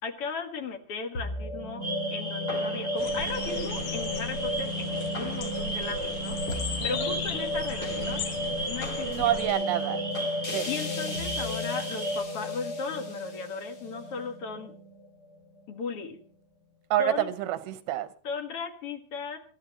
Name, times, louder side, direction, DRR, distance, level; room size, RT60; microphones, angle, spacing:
voice 1, 0.0-6.4 6.8-8.2 8.7-9.4 10.6-14.7 15.7-16.2 17.0-17.3 18.2-19.4, left 4 dB, 50° left, 1.9 m, -36 dB
sound 1, 1.1-15.6, left 1 dB, 30° left, 2.1 m, -33 dB
sound 2, 1.8-12.2, right 2 dB, 15° right, 3.4 m, -37 dB
sound 3, 3.0-9.5, left 5 dB, 70° left, 3.0 m, -38 dB
voice 2, 6.8-7.2 9.0-10.0 10.5-10.7 16.9-18.1, right 12 dB, 85° right, 2.9 m, -28 dB
26.0 x 12.5 x 3.0 m
omnidirectional pair, 4.3 m